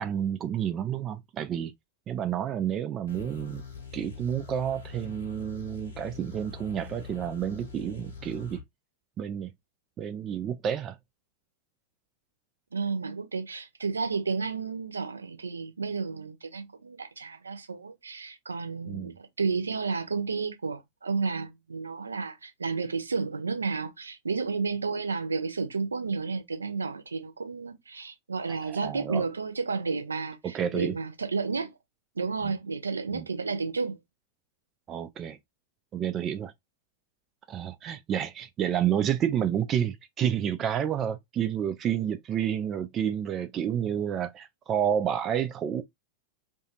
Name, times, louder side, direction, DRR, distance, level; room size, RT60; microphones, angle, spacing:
voice 1, 0.0-1.7 2.1-3.6 3.9-8.6 9.2-9.5 10.0-11.0 18.9-19.1 28.5-29.2 30.4-30.9 32.4-32.5 33.1-33.2 34.9-35.4 35.9-36.5 37.5-45.8, right 9 dB, 30° right, 0.3 m, -30 dB
sound 1, 3.1-8.6, left 6 dB, 75° left, 1.1 m, -43 dB
voice 2, 12.7-31.7 32.2-34.0, right 4 dB, 75° right, 0.6 m, -32 dB
2.7 x 2.4 x 2.8 m
figure-of-eight pair, 90°, 0 cm